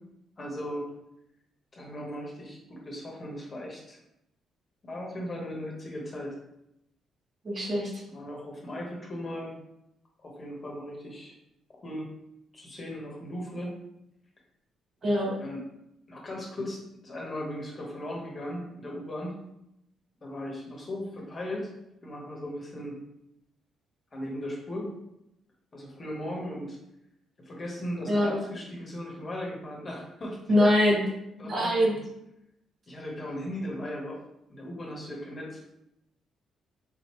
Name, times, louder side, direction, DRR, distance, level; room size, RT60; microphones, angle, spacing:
voice 1, 0.4-0.8 1.7-4.0 4.8-6.3 8.1-9.5 10.2-11.3 11.7-12.1 12.5-13.7 15.4-15.6 16.1-19.4 20.2-21.7 22.0-23.0 24.1-24.9 25.7-26.8 27.4-30.4 30.7-30.8 31.4-32.0 32.9-34.2 34.5-35.6, left 1 dB, 35° left, -2 dB, 1.1 m, -37 dB
voice 2, 7.4-7.9 15.0-15.3 28.1-28.3 30.5-31.0 31.4-32.0, left 1 dB, 40° right, -3 dB, 1.3 m, -23 dB
4.0 x 2.9 x 3.0 m, 0.82 s
cardioid pair, 90°, 0 cm